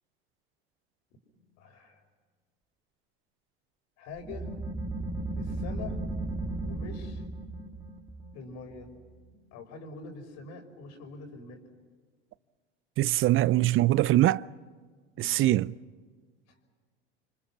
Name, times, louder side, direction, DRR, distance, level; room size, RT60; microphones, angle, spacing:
voice 1, 1.6-2.0 4.0-4.5 5.4-6.0 6.6-7.2 8.3-8.9 9.5-11.6 13.7-13.9 15.2-15.5, left 3 dB, 60° left, 5.6 m, -44 dB
sound 1, 4.2-9.5, right 2 dB, 10° right, 2.4 m, -36 dB
voice 2, 13.0-14.4 15.2-15.8, right 15 dB, 40° right, 0.6 m, -23 dB
29.0 x 25.5 x 6.0 m
hypercardioid pair, 85°, 31 cm